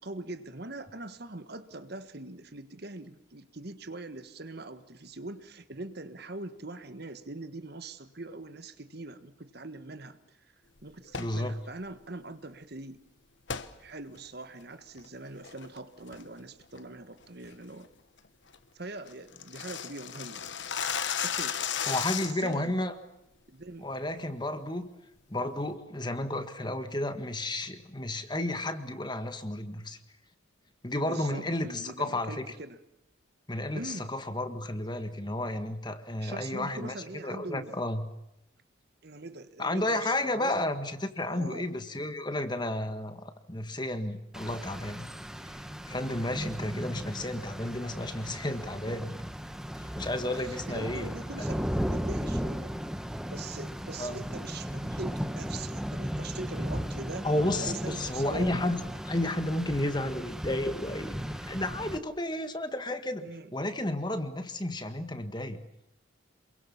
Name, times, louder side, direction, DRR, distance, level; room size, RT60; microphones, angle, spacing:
voice 1, 0.0-10.4 10.8-13.0 13.8-17.9 18.7-20.4 21.2-21.5 22.2-22.8 23.5-23.9 30.9-32.8 33.7-34.1 36.2-37.7 39.0-40.7 41.3-41.7 50.3-52.8 53.3-57.3 57.6-58.5 63.2-63.5, right 2 dB, 50° right, 11 dB, 1.4 m, -42 dB
sound 1, 11.0-11.4 13.5-13.7 14.2-14.3 14.8-15.1 15.4-15.8 16.1-16.4 16.7-16.8 17.2-17.5 17.8-17.9 18.2-18.3 18.5-18.6 18.9-22.5, left 8 dB, 60° left, 1.3 m, -34 dB
voice 2, 11.2-11.6 21.9-22.9 23.8-24.9 25.3-30.0 30.8-32.5 33.5-36.9 37.2-38.1 39.6-45.1 45.9-49.2 49.8-51.1 54.0-54.2 57.2-65.6, left 1 dB, 20° left, 9 dB, 1.6 m, -32 dB
Rain, 44.3-62.0, equal, 5° right, 1.0 m, -36 dB
28.0 x 22.5 x 7.2 m, 0.85 s
head